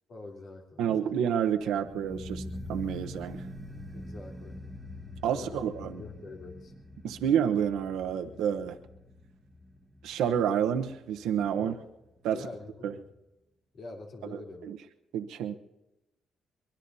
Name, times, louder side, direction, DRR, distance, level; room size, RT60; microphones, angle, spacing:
voice 1, 0.1-1.1 3.9-4.6 5.3-5.7 6.0-6.7 11.5-11.8 12.3-13.1 13.7-14.7, left 2 dB, 60° left, -1 dB, 3.3 m, -44 dB
voice 2, 0.8-2.4 2.7-3.4 5.2-6.0 7.0-8.8 10.0-11.7 12.2-12.4 12.8-12.9 14.7-14.8 15.1-15.5, right 8 dB, 90° right, 6 dB, 0.9 m, -29 dB
sound 1, 1.5-12.4 12.7-12.8, left 1 dB, 5° right, 1.5 m, -44 dB
23.5 x 22.0 x 2.7 m, 0.96 s
cardioid pair, 90°, 0 cm